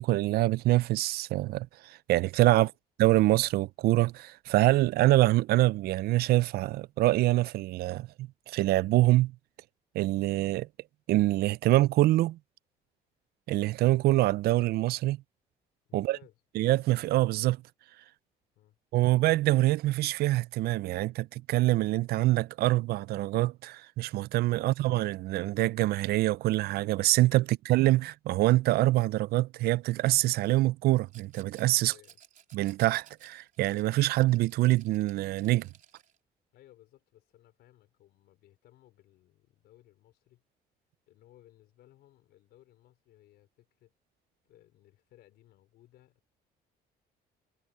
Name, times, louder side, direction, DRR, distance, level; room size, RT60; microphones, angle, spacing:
voice 1, 0.0-2.7 3.0-9.3 9.9-10.7 11.1-12.4 13.5-15.2 15.9-16.2 16.6-17.6 18.9-31.9 32.5-35.7, right 17 dB, 70° right, 0.4 m, -25 dB
voice 2, 15.9-16.4 18.5-18.8 31.8-32.2 36.5-40.4 41.1-43.9 44.4-46.3, left 14 dB, 75° left, 4.6 m, -60 dB
Rattle, 31.1-36.2, right 9 dB, 50° right, 3.8 m, -57 dB
cardioid pair, 110°, 17 cm